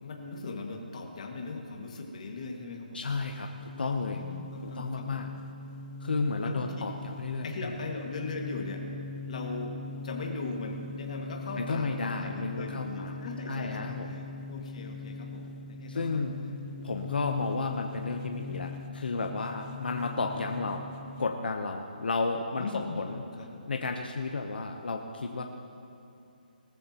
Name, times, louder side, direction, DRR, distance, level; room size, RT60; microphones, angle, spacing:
voice 1, 0.0-3.1 4.1-5.3 6.4-6.7 7.4-8.8 9.3-9.8 10.0-14.2 14.5-16.2 22.6-23.6, left 3 dB, 45° left, 1 dB, 1.9 m, -39 dB
voice 2, 2.9-4.2 4.8-5.3 6.0-7.7 11.6-13.1 13.5-14.1 15.9-16.4 16.8-20.8 21.2-23.2 23.7-25.4, left 3 dB, 80° left, 3 dB, 0.9 m, -32 dB
sound 1, 3.1-21.3, left 3 dB, 15° left, 0.3 m, -42 dB
19.5 x 14.0 x 3.0 m, 2.7 s
hypercardioid pair, 165°, 5 cm